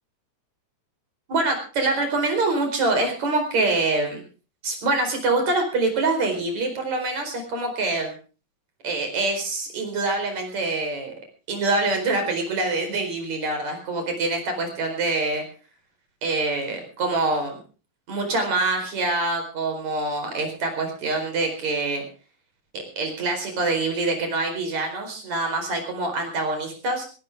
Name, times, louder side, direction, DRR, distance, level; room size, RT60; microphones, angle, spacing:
voice 1, 1.3-4.2 4.6-8.2 8.8-11.1 11.5-15.4 16.2-17.6 18.1-22.0 22.7-27.1, right 2 dB, 65° right, 5 dB, 5.8 m, -25 dB
18.5 x 17.5 x 3.7 m, 0.36 s
omnidirectional pair, 3.4 m